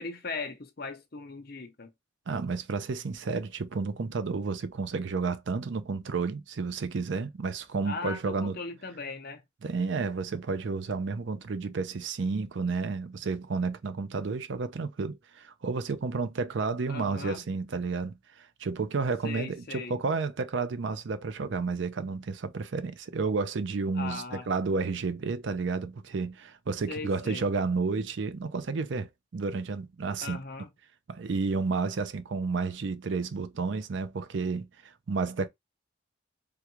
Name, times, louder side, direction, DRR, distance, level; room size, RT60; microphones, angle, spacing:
voice 1, 0.0-1.9 7.8-9.4 16.9-17.4 19.2-20.0 23.9-24.5 26.9-27.5 30.2-30.7, left 4 dB, 50° left, 0.7 m, -38 dB
voice 2, 2.3-8.6 9.6-30.4 31.1-35.5, right 4 dB, 65° right, 0.5 m, -31 dB
3.6 x 2.3 x 3.0 m
head